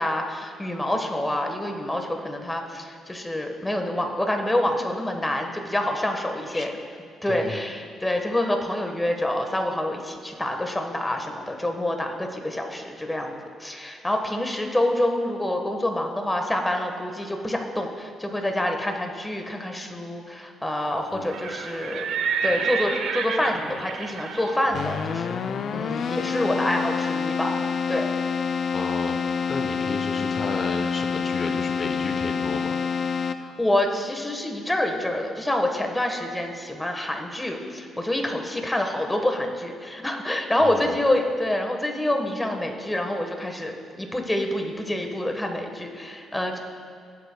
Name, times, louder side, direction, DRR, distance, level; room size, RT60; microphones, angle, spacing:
voice 1, 0.0-6.7 7.2-13.3 13.6-22.1 22.4-25.4 25.7-28.1 33.6-46.6, left 1 dB, 10° left, 3 dB, 1.3 m, -27 dB
voice 2, 7.3-7.6 21.1-21.4 28.7-32.8 40.6-41.0, left 3 dB, 40° left, 6 dB, 1.0 m, -33 dB
Livestock farm animals working animals, 21.1-27.0, right 5 dB, 80° right, 0.8 m, -31 dB
Keyboard (musical), 24.7-33.7, left 6 dB, 60° left, 0.4 m, -27 dB
18.0 x 8.4 x 2.3 m, 2.3 s
cardioid pair, 90°, 0 cm